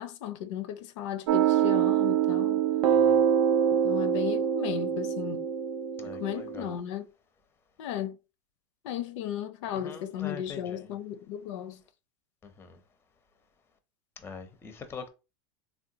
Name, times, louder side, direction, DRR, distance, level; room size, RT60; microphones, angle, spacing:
voice 1, 0.0-2.6 3.7-5.5 6.0-7.1 7.8-8.2 8.8-11.8, left 10 dB, 70° left, 0.4 m, -35 dB
sound 1, 1.3-6.8, right 9 dB, 75° right, 0.5 m, -25 dB
voice 2, 2.9-3.2 6.0-6.7 9.8-10.9 12.6-12.8 14.2-15.1, left 5 dB, 15° left, 0.5 m, -43 dB
3.7 x 2.1 x 2.7 m
supercardioid pair, 125°, 17 cm